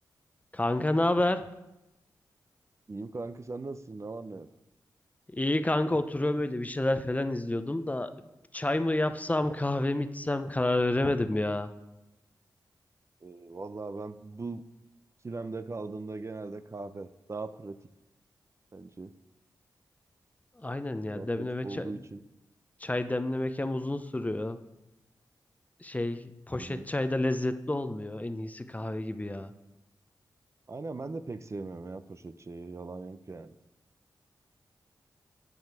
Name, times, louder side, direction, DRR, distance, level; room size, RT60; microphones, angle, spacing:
voice 1, 0.5-1.4 5.3-8.3 8.5-11.7 20.6-22.0 22.8-24.6 25.8-29.5, left 1 dB, 20° left, 10 dB, 0.7 m, -29 dB
voice 2, 2.9-4.5 13.2-14.6 15.2-17.8 18.7-19.1 21.1-22.2 26.6-26.8 30.7-33.5, right 3 dB, 40° right, 11 dB, 0.6 m, -39 dB
10.5 x 8.7 x 4.8 m, 0.95 s
cardioid pair, 55°, 8 cm